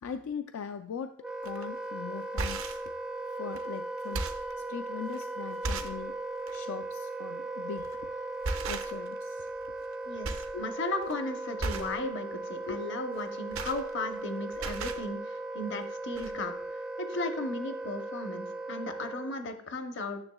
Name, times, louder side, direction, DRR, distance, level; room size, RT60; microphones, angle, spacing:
voice 1, 0.0-1.2 1.4-2.8 3.3-4.3 4.6-6.2 6.5-8.2 8.7-9.5 10.5-10.6 12.7-12.8, left 7 dB, 75° left, 8 dB, 0.3 m, -40 dB
Wind instrument woodwind instrument, 1.2-19.4, right 2 dB, 5° right, 0.4 m, -38 dB
sound 1, 1.4-1.6 2.2-2.9 3.5-3.6 4.0-4.5 5.1-5.2 5.6-6.0 6.4-6.6 7.8-8.0 8.4-9.2 9.5-9.9 10.2-10.6 10.9-11.1 11.6-12.0 13.1-14.3 14.5-15.1 15.8-15.9 16.1-16.3, right 3 dB, 70° right, 0.6 m, -35 dB
voice 2, 10.1-16.5 17.0-20.2, left 2 dB, 55° left, 7 dB, 0.7 m, -36 dB
9.6 x 6.9 x 2.2 m, 0.68 s
head